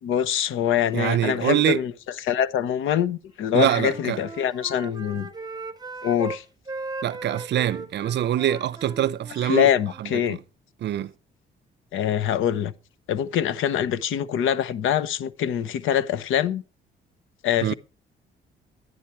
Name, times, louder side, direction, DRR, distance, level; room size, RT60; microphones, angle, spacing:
voice 1, 0.0-1.9 2.2-5.3 6.0-6.4 9.4-10.4 11.9-12.7 13.1-16.6 17.4-17.7, left 9 dB, 85° left, 0.8 m, -24 dB
voice 2, 0.9-1.8 3.5-4.2 7.0-9.7 10.0-10.4 10.8-11.1 17.6-17.7, right 11 dB, 60° right, 0.5 m, -24 dB
Wind instrument woodwind instrument, 3.7-6.4 6.7-10.3, right 3 dB, 20° right, 0.8 m, -38 dB
11.0 x 10.0 x 4.5 m
cardioid pair, 90°, 20 cm